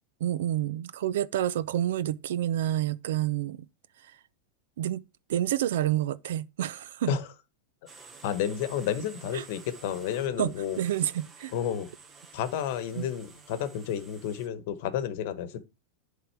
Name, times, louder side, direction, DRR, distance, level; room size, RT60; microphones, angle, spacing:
voice 1, 0.2-3.7 4.8-5.0 5.3-7.1 9.3-9.4 10.4-11.5 13.0-13.1, right 12 dB, 75° right, 0.5 m, -29 dB
sound 1, 7.9-14.5, right 4 dB, 15° right, 0.9 m, -51 dB
voice 2, 8.2-10.8 11.5-11.9 12.3-15.6, left 9 dB, 55° left, 1.1 m, -31 dB
10.5 x 3.8 x 4.4 m
supercardioid pair, 160°, 0 cm